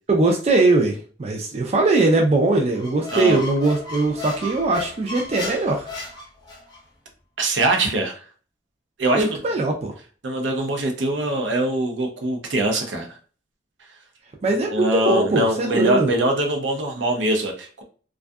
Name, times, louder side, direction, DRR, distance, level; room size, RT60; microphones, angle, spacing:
voice 1, 0.1-5.9 9.1-10.0 14.4-16.1, right 2 dB, 35° right, 1 dB, 0.3 m, -20 dB
Squeak, 2.7-6.8, left 2 dB, 20° left, 0.6 m, -35 dB
voice 2, 7.4-8.2 9.0-9.3 10.2-13.1 14.7-17.8, right 1 dB, 75° right, 3 dB, 0.6 m, -22 dB
2.5 x 2.3 x 2.2 m, 0.40 s
head